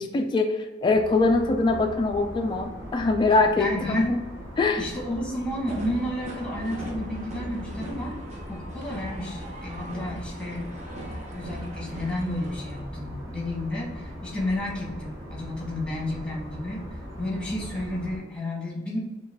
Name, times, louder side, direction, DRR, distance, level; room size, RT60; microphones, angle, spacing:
voice 1, 0.0-4.2 4.6-4.8, left 3 dB, 25° left, 4 dB, 0.3 m, -23 dB
sound 1, 0.8-18.2, equal, 15° right, 1.4 m, -40 dB
voice 2, 3.6-4.1 4.8-8.2 8.5-19.0, left 1 dB, 5° left, -3 dB, 1.1 m, -32 dB
sound 2, 5.7-12.8, right 1 dB, 40° right, 0.8 m, -40 dB
5.5 x 2.3 x 3.5 m, 1.2 s
head